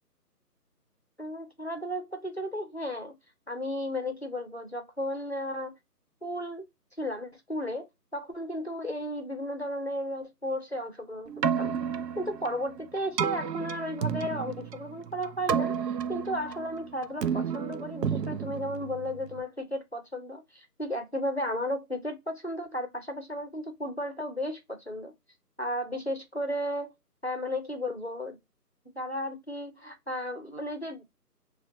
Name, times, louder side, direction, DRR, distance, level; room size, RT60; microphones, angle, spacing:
voice 1, 1.2-3.2 3.5-5.8 6.2-6.6 7.0-7.9 8.1-11.7 12.2-25.1 25.6-26.9 27.2-28.4 29.0-31.0, equal, 45° left, 0.5 m, -34 dB
Keyboard (musical), 11.3-19.4, right 7 dB, 80° right, 0.5 m, -32 dB
2.2 x 2.2 x 2.8 m
figure-of-eight pair, 175°, 48 cm